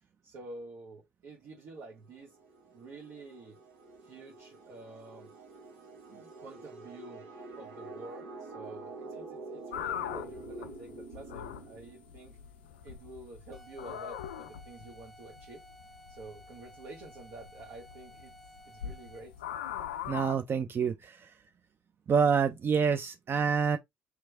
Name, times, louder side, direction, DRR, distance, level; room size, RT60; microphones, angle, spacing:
voice 1, 0.2-2.4 2.7-3.6 4.0-5.3 6.1-7.3 7.6-12.4 12.8-15.6 16.1-18.4 18.6-19.3, right 2 dB, 65° right, 1.4 m, -49 dB
sound 1, 2.0-12.5, right 3 dB, 85° right, 1.6 m, -47 dB
sound 2, 9.7-20.4, left 10 dB, 90° left, 0.4 m, -42 dB
sound 3, 13.5-19.4, equal, 5° right, 1.2 m, -55 dB
voice 2, 20.1-21.3 22.1-23.8, right 6 dB, 40° right, 0.5 m, -27 dB
3.4 x 3.1 x 3.4 m
hypercardioid pair, 60°, 6 cm